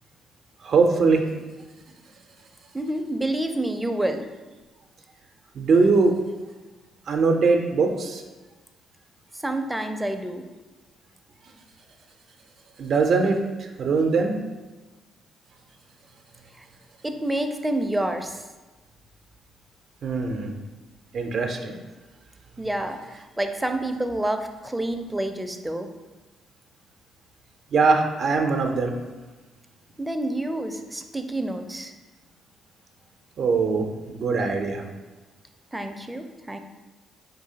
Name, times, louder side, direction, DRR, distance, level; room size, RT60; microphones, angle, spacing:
voice 1, 0.6-1.2 5.5-6.1 7.1-8.2 12.8-14.4 20.0-20.5 21.1-21.7 27.7-28.9 33.4-34.8, right 4 dB, 60° right, 3 dB, 0.6 m, -21 dB
voice 2, 2.7-4.2 9.3-10.5 17.0-18.4 22.6-25.9 30.0-31.9 35.7-36.6, right 1 dB, 10° right, 6 dB, 0.5 m, -28 dB
4.7 x 3.8 x 2.8 m, 1.2 s
hypercardioid pair, 50°, 0 cm